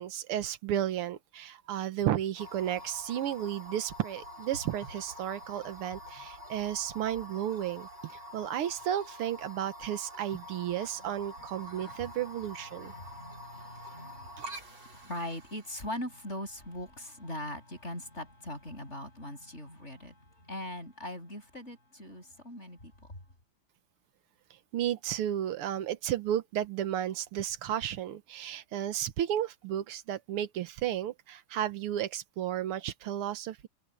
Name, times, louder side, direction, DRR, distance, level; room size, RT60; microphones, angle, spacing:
voice 1, 0.0-12.9 24.7-33.7, right 11 dB, 85° right, 1.9 m, -33 dB
sound 1, 2.4-15.7, left 1 dB, 65° right, 5.9 m, -46 dB
voice 2, 12.7-20.1 20.4-22.9, left 1 dB, 30° left, 7.7 m, -41 dB
omnidirectional pair, 2.4 m